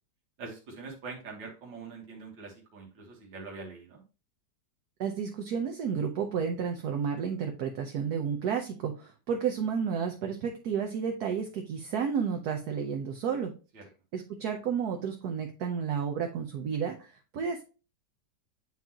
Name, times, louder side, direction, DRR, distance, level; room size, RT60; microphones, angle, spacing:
voice 1, 0.4-4.0 13.7-13.8, right 4 dB, 85° right, 0 dB, 2.1 m, -44 dB
voice 2, 5.0-13.5 14.1-17.6, right 7 dB, 65° right, 4 dB, 1.2 m, -31 dB
8.9 x 3.8 x 2.9 m, 0.32 s
omnidirectional pair, 1.9 m